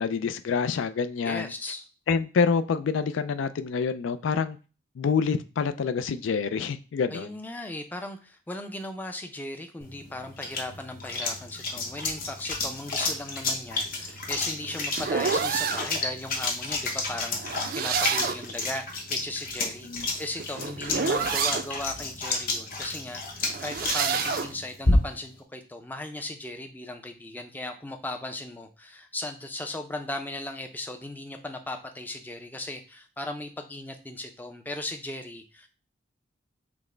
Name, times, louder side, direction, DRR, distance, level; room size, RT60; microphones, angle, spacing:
voice 1, 0.0-1.5 2.1-4.6 5.0-7.4 19.9-20.1, left 5 dB, 80° left, 0.4 m, -27 dB
voice 2, 1.2-1.8 7.1-35.7, left 1 dB, 10° left, 0.4 m, -37 dB
sound 1, 9.8-25.4, left 2 dB, 45° left, 0.9 m, -31 dB
sound 2, 14.1-15.9 17.4-18.5 19.9-21.7 23.4-24.5, right 6 dB, 50° right, 0.4 m, -28 dB
5.9 x 2.1 x 3.3 m
head